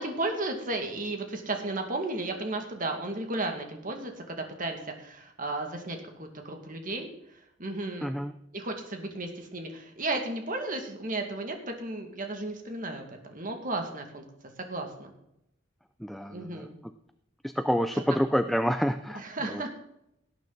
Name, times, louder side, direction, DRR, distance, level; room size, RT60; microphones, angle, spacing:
voice 1, 0.0-7.1 7.6-8.1 8.5-14.2 14.6-15.1 16.3-16.8 19.3-19.7, right 2 dB, 45° right, 4 dB, 2.1 m, -34 dB
voice 2, 8.0-8.3 16.0-16.7 17.4-19.6, equal, ahead, 9 dB, 0.4 m, -28 dB
18.0 x 9.1 x 4.0 m, 0.80 s
head